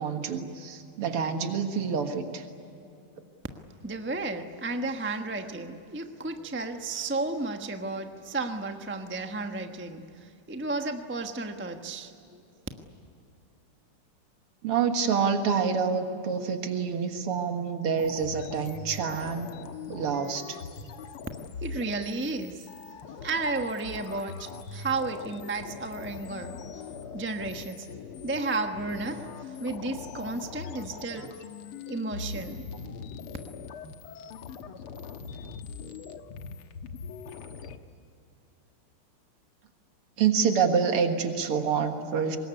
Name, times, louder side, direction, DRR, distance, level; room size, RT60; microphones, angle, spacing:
voice 1, 0.0-2.4 14.6-19.5 19.9-20.6 40.2-42.4, right 6 dB, 85° right, 5 dB, 2.5 m, -27 dB
voice 2, 3.8-10.0 10.5-12.1 21.6-22.6 23.2-26.6 27.1-27.9 28.2-29.2 29.6-31.3 31.9-32.6, right 3 dB, 10° right, 5 dB, 0.7 m, -33 dB
sound 1, 18.0-37.8, left 5 dB, 85° left, 2.1 m, -41 dB
25.0 x 20.5 x 9.7 m, 2.6 s
omnidirectional pair, 2.4 m